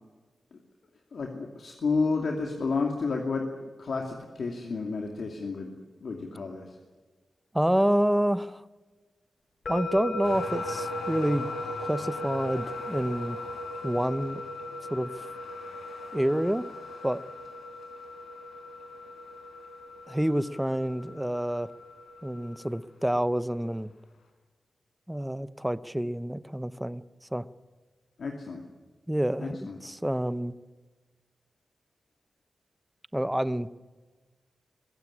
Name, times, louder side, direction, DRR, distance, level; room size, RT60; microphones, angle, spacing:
voice 1, 1.1-5.7 6.0-6.7 28.2-28.6 29.4-29.8, left 4 dB, 65° left, 2 dB, 2.5 m, -31 dB
voice 2, 7.5-8.6 9.7-11.5 11.8-13.4 13.8-14.4 14.9-15.3 16.1-16.7 17.0-17.2 20.1-21.7 22.2-23.9 25.1-27.0 27.3-27.5 29.1-29.6 29.8-30.5 33.1-33.7, equal, 5° right, 15 dB, 0.7 m, -28 dB
sound 1, 9.7-22.6, left 1 dB, 50° left, 7.0 m, -38 dB
sound 2, 10.2-23.0 23.7-23.8, left 3 dB, 80° left, 4.6 m, -47 dB
22.5 x 16.0 x 9.9 m, 1.4 s
wide cardioid pair, 120°, 0 cm